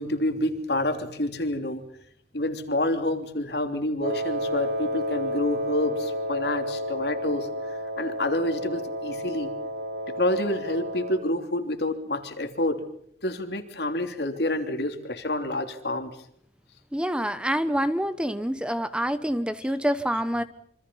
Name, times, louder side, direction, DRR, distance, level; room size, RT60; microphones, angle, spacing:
voice 1, 0.0-1.8 2.3-7.5 8.0-9.5 10.1-12.8 13.2-16.1, left 1 dB, 70° left, 6 dB, 3.2 m, -28 dB
Wind instrument woodwind instrument, 4.0-11.3, equal, 75° right, 1.1 m, -31 dB
voice 2, 16.9-20.4, equal, 5° right, 12 dB, 0.9 m, -26 dB
27.0 x 25.5 x 5.6 m, 0.66 s
head